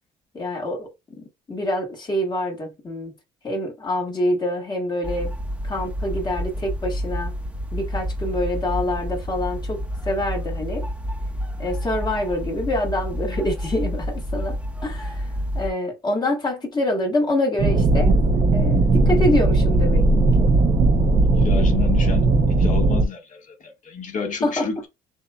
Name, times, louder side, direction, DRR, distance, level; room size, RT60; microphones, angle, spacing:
voice 1, 0.3-0.9 1.5-3.1 3.4-5.3 5.6-7.3 7.7-9.8 10.0-10.8 11.6-14.6 14.8-15.2 15.5-18.1 18.5-20.0 24.4-24.7, left 1 dB, 25° left, 1.6 m, -25 dB
sound 1, 5.0-15.7, equal, 5° right, 0.9 m, -29 dB
sound 2, 17.6-23.0, right 2 dB, 40° right, 0.8 m, -18 dB
voice 2, 21.2-22.3 22.6-24.9, left 6 dB, 50° left, 1.7 m, -30 dB
7.0 x 2.5 x 2.3 m
cardioid pair, 110°, 17 cm